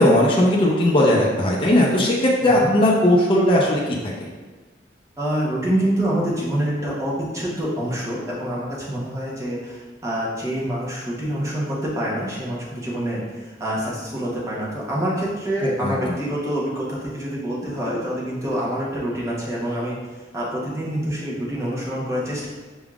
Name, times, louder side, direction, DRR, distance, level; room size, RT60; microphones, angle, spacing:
voice 1, 0.0-4.3 15.6-16.2, left 1 dB, 30° left, -4 dB, 0.6 m, -18 dB
voice 2, 5.2-20.0 20.3-22.5, right 1 dB, 15° right, -6 dB, 0.9 m, -26 dB
6.0 x 3.5 x 2.4 m, 1.3 s
head